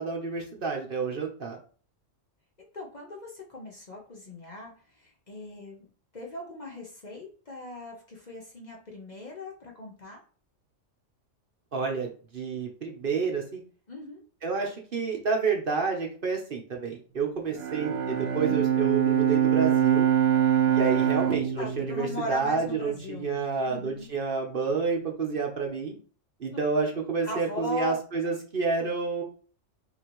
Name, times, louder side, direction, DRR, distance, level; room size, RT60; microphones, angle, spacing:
voice 1, 0.0-1.6 11.7-13.6 14.4-20.1 20.7-26.0 26.4-29.2, right 4 dB, 50° right, 1 dB, 1.0 m, -29 dB
voice 2, 2.6-5.9 6.1-10.2 13.9-14.2 20.9-23.3 23.6-24.1 27.2-28.0, left 1 dB, 40° left, -1 dB, 1.0 m, -39 dB
Bowed string instrument, 17.5-23.0, right 10 dB, 75° right, 0.9 m, -25 dB
5.4 x 2.9 x 3.0 m, 0.40 s
omnidirectional pair, 1.3 m